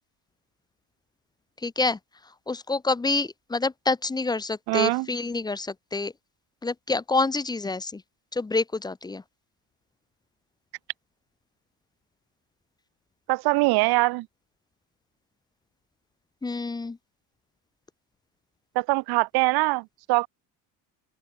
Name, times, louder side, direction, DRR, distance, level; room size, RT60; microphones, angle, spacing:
voice 1, 1.6-2.0 2.5-6.1 6.6-8.0 8.3-9.2 16.4-17.0, left 3 dB, 10° left, 0.9 m, -27 dB
voice 2, 4.7-5.1 13.3-14.3 18.7-20.3, right 23 dB, 60° right, 1.0 m, -23 dB
open air
cardioid pair, 160°, 42 cm